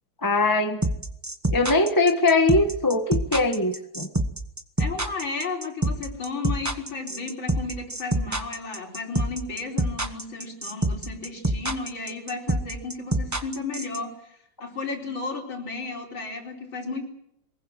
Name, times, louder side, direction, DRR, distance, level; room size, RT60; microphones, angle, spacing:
voice 1, 0.2-0.8 1.5-4.1, left 2 dB, 10° left, 5 dB, 1.3 m, -21 dB
sound 1, 0.8-14.0, right 1 dB, 10° right, 0.8 m, -25 dB
voice 2, 4.8-17.1, left 4 dB, 85° left, 0 dB, 5.1 m, -33 dB
23.5 x 20.5 x 7.5 m, 0.75 s
omnidirectional pair, 2.1 m